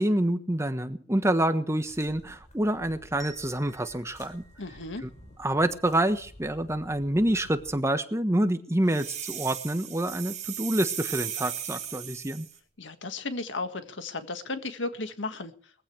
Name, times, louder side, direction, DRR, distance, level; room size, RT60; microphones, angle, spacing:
voice 1, 0.0-4.4 5.0-5.1 5.4-12.5, right 1 dB, 15° right, 9 dB, 1.4 m, -27 dB
sound 1, 1.8-7.8, left 1 dB, 40° left, 5.8 m, -52 dB
sound 2, 3.2-6.0, right 3 dB, ahead, 5.3 m, -53 dB
voice 2, 4.6-5.0 12.8-15.5, left 3 dB, 80° left, 9 dB, 1.9 m, -34 dB
sound 3, 8.9-12.6, right 10 dB, 40° right, 5.3 m, -36 dB
21.5 x 15.5 x 3.4 m, 0.44 s
head